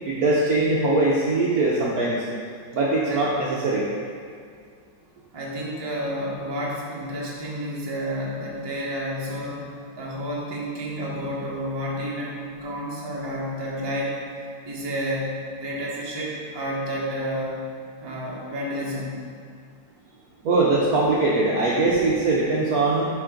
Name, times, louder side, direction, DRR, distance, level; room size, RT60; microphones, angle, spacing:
voice 1, 0.0-2.2 2.7-3.9 20.4-23.1, right 2 dB, 60° right, -4 dB, 1.0 m, -21 dB
voice 2, 5.3-9.7 10.0-14.2 14.6-17.6 18.0-19.2, equal, 20° right, -5 dB, 0.8 m, -30 dB
10.5 x 4.1 x 3.8 m, 2.1 s
omnidirectional pair, 2.3 m